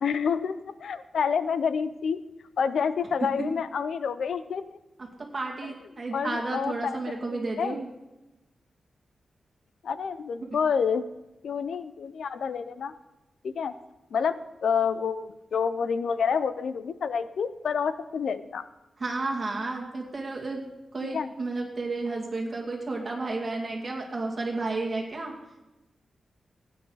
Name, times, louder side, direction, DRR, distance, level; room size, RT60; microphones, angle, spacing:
voice 1, 0.0-2.2 2.6-4.8 6.1-7.0 7.3-7.8 9.8-11.0 11.4-12.9 13.4-13.7 14.1-18.6 21.1-21.3, left 6 dB, 75° left, 13 dB, 0.5 m, -28 dB
voice 2, 5.3-7.9 19.0-20.6 20.9-25.3, right 3 dB, 35° right, 0 dB, 2.3 m, -32 dB
16.0 x 9.3 x 4.0 m, 1.0 s
wide cardioid pair, 140°, 0 cm